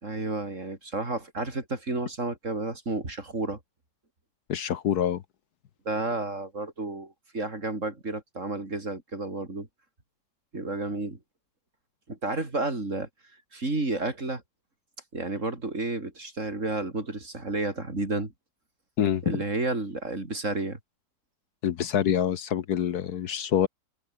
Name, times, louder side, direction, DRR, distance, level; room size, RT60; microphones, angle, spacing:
voice 1, 0.0-3.6 5.9-9.7 10.5-11.2 12.1-13.1 13.5-14.4 15.1-18.3 19.2-20.8, right 2 dB, 45° right, 4.6 m, -31 dB
voice 2, 4.5-5.2 19.0-19.2 21.6-23.7, left 9 dB, 65° left, 1.4 m, -26 dB
open air
omnidirectional pair, 1.8 m